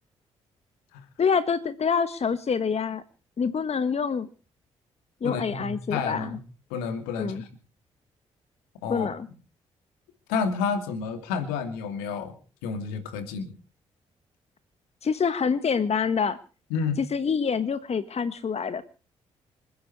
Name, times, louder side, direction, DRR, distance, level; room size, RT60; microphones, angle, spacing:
voice 1, 1.2-3.0 3.4-4.3 5.2-6.3 7.2-7.4 8.9-9.3 15.0-16.4 17.1-18.8, left 6 dB, 45° left, 12 dB, 1.5 m, -26 dB
voice 2, 5.2-6.4 6.7-7.5 8.8-9.1 10.3-12.3 12.6-13.5 16.7-17.0, left 5 dB, 80° left, 7 dB, 2.7 m, -30 dB
27.0 x 10.5 x 4.8 m, 0.38 s
hypercardioid pair, 40°, 15 cm